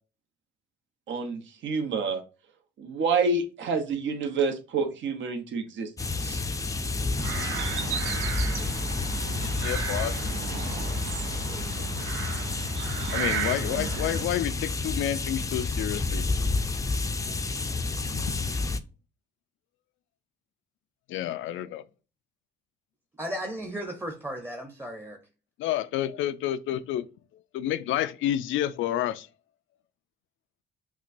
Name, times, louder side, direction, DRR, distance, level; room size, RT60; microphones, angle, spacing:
voice 1, 1.1-2.2 2.8-5.9 6.2-6.4, right 4 dB, 70° right, 0.9 m, -28 dB
sound 1, 6.0-18.8, left 3 dB, 15° left, 0.4 m, -30 dB
sound 2, 7.2-14.3, right 7 dB, 90° right, 0.6 m, -34 dB
voice 2, 9.2-10.1 13.1-16.3 18.1-18.3 21.1-21.8 25.6-27.1 27.5-29.3, left 12 dB, 80° left, 0.4 m, -29 dB
voice 3, 23.2-25.2, equal, 10° right, 0.7 m, -35 dB
5.9 x 2.2 x 2.6 m
cardioid pair, 90°, 20 cm